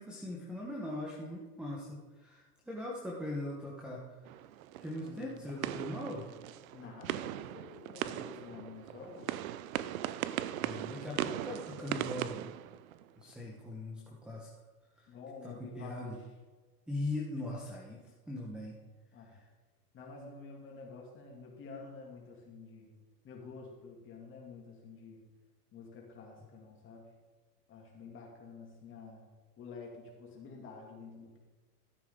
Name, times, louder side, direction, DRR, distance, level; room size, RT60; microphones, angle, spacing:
voice 1, 0.0-4.2 4.8-6.3 10.6-12.5 13.2-14.5 15.0-15.1 15.4-16.2 16.9-18.7 19.3-19.4, left 1 dB, ahead, -4 dB, 1.1 m, -40 dB
sound 1, 4.3-13.3, right 12 dB, 60° right, 0.6 m, -39 dB
voice 2, 5.0-5.6 6.7-9.3 15.1-16.3 19.1-19.4 19.9-23.0 23.2-25.2 25.7-27.1 27.7-29.2 29.6-31.4, left 4 dB, 25° left, -1 dB, 2.6 m, -49 dB
14.0 x 8.4 x 3.8 m, 1.3 s
hypercardioid pair, 135°, 48 cm